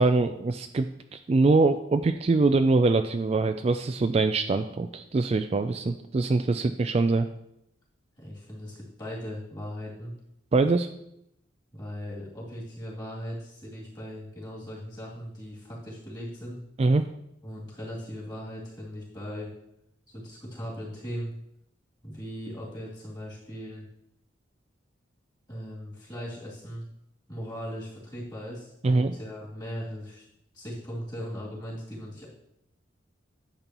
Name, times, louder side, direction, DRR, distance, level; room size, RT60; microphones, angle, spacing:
voice 1, 0.0-7.3 10.5-10.9 16.8-17.1 28.8-29.1, right 3 dB, 30° right, 8 dB, 0.3 m, -23 dB
voice 2, 8.2-10.1 11.7-16.6 17.4-19.5 20.1-21.3 22.0-23.9 25.5-26.8 27.3-30.2 30.5-32.3, equal, 20° left, -5 dB, 2.7 m, -38 dB
10.5 x 6.8 x 3.0 m, 0.77 s
head